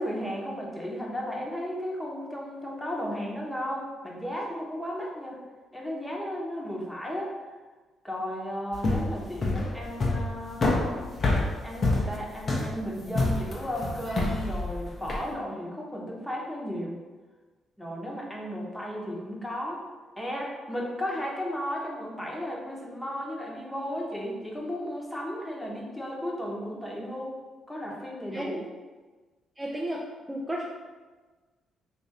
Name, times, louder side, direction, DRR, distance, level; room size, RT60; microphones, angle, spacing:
voice 1, 0.0-5.4 5.7-7.3 8.0-10.6 11.6-17.0 17.8-19.8 20.2-27.4 27.7-28.6, equal, 5° left, -2 dB, 1.0 m, -34 dB
sound 1, 8.7-15.3, left 2 dB, 50° left, 0.7 m, -27 dB
voice 2, 29.6-30.7, right 1 dB, 15° right, -2 dB, 0.5 m, -33 dB
2.9 x 2.5 x 4.0 m, 1.3 s
supercardioid pair, 55°, 0 cm